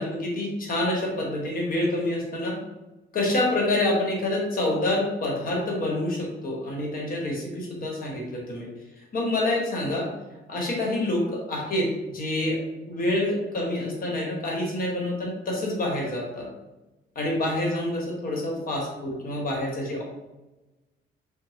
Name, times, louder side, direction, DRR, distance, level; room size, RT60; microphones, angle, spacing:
voice 1, 0.0-2.6 3.1-8.7 9.1-10.1 10.5-16.4 17.1-20.0, left 1 dB, 45° left, -2 dB, 1.1 m, -27 dB
2.9 x 2.1 x 2.8 m, 1.0 s
cardioid pair, 90°, 20 cm